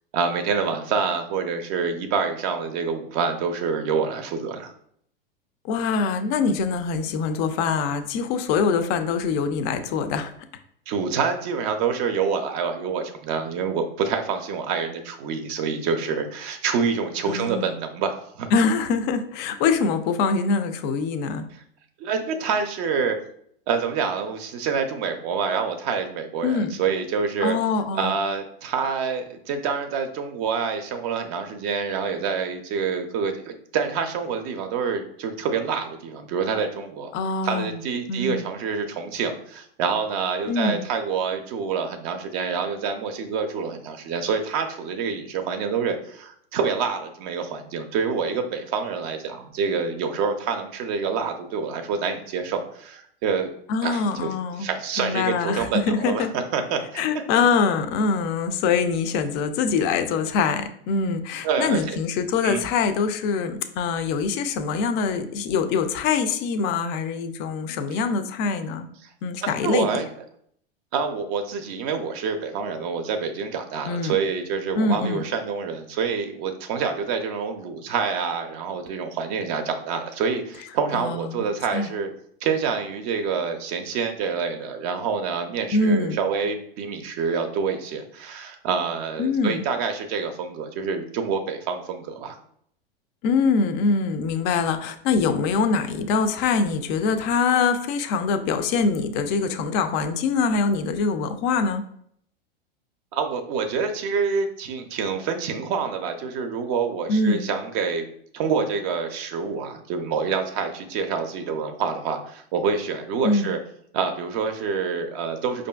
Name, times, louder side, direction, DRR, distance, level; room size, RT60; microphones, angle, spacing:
voice 1, 0.1-4.7 10.9-18.5 21.5-21.6 22.0-23.2 23.7-27.6 28.0-37.1 37.4-53.5 53.8-57.0 61.4-62.0 62.4-62.6 67.9-68.0 69.0-69.1 69.4-70.1 70.9-82.1 82.4-92.4 103.1-108.1 108.3-113.6 113.9-115.7, right 5 dB, 40° right, 6 dB, 0.5 m, -27 dB
voice 2, 5.6-10.3 17.3-17.7 18.5-21.5 26.4-26.7 27.4-28.1 37.1-37.8 38.1-38.5 40.5-40.8 53.7-54.7 55.0-56.3 57.0-68.9 69.2-69.9 73.9-74.2 74.8-75.2 80.9-81.4 81.7-81.9 85.7-86.2 89.2-89.6 93.2-101.8 107.1-107.5 113.2-113.5, left 4 dB, 35° left, 8 dB, 0.4 m, -24 dB
4.8 x 2.5 x 2.3 m, 0.67 s
hypercardioid pair, 105°, 30 cm